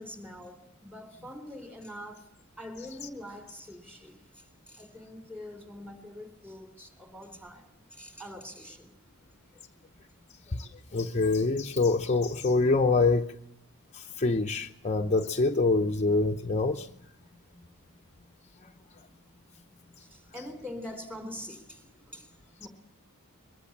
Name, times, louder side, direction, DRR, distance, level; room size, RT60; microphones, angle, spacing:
voice 1, 0.0-2.3 2.6-8.9 20.0-22.3 22.6-22.7, left 1 dB, 10° right, 3.7 m, -44 dB
voice 2, 10.6-13.3 13.9-16.9, left 3 dB, 30° left, 0.8 m, -25 dB
22.5 x 22.0 x 7.3 m
head